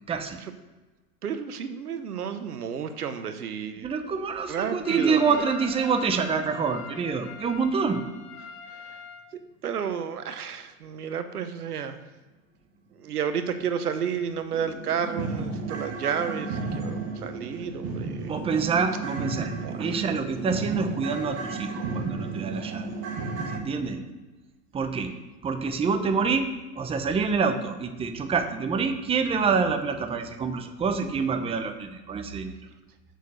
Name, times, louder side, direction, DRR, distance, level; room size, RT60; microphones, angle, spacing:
voice 1, 0.1-0.4 3.8-8.0 18.2-19.5 19.8-22.9 23.5-24.0 24.7-25.1 25.4-26.5 26.8-32.6, right 5 dB, 15° right, 7 dB, 0.7 m, -26 dB
voice 2, 1.2-3.9 4.5-5.5 8.7-9.0 9.6-12.0 13.0-18.3 19.6-20.0, right 7 dB, 90° right, 9 dB, 1.0 m, -31 dB
Trumpet, 4.8-9.3, left 6 dB, 45° left, 1.4 m, -43 dB
sound 1, 13.6-13.7 14.1-14.2 14.5-23.6, right 3 dB, 30° right, 1.6 m, -33 dB
6.6 x 6.5 x 6.5 m, 1.2 s
hypercardioid pair, 110°, 45 cm